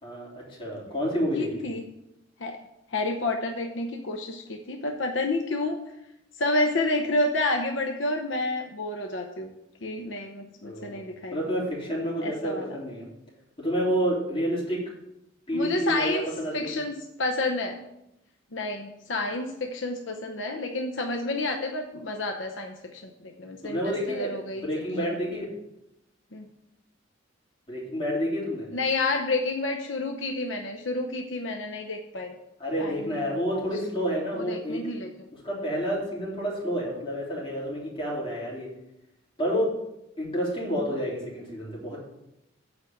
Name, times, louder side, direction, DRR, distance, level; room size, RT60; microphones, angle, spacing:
voice 1, 0.0-1.5 10.6-11.0 11.3-13.0 13.6-14.8 15.5-16.8 23.6-25.5 27.7-28.7 32.6-34.9 35.3-38.7 39.4-39.7 40.2-42.0, equal, 30° left, -5 dB, 3.5 m, -29 dB
voice 2, 1.3-1.8 2.4-2.6 2.9-5.8 6.4-9.5 9.8-11.4 12.2-12.7 15.5-16.3 16.5-17.8 18.5-24.7 25.0-25.2 26.3-26.5 28.7-32.4 32.8-33.7 34.4-35.1, left 2 dB, 75° left, 3 dB, 0.8 m, -30 dB
8.2 x 5.1 x 7.1 m, 0.86 s
head